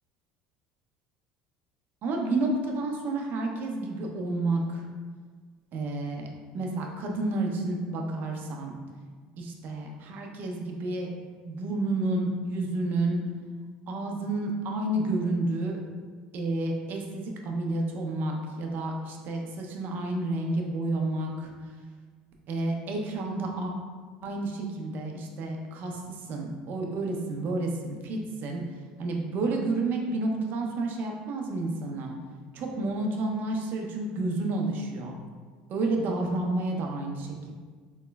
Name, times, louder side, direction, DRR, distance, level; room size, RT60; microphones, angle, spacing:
voice 1, 2.0-4.8 5.7-6.3 6.5-8.8 9.4-11.1 11.4-13.2 13.9-15.8 16.3-21.5 22.5-23.7 24.2-28.6 29.0-32.1 32.5-35.1 35.7-37.5, right 2 dB, 55° right, 1 dB, 0.6 m, -30 dB
3.6 x 3.0 x 2.2 m, 1.5 s
supercardioid pair, 85°, 4 cm